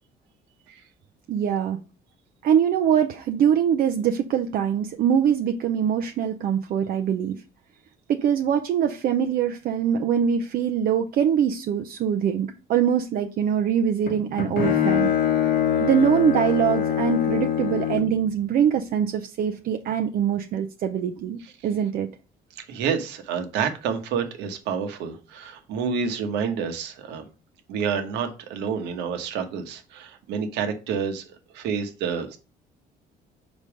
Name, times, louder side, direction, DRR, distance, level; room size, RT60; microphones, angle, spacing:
voice 1, 1.3-1.8 2.4-7.4 8.1-15.1 15.8-22.1, right 8 dB, 60° right, 5 dB, 0.6 m, -23 dB
Bowed string instrument, 14.1-18.2, left 9 dB, 80° left, 1.4 m, -24 dB
voice 2, 22.6-27.2 27.7-32.4, right 6 dB, 90° right, 6 dB, 1.2 m, -29 dB
5.3 x 4.1 x 4.8 m, 0.34 s
cardioid pair, 110°, 17 cm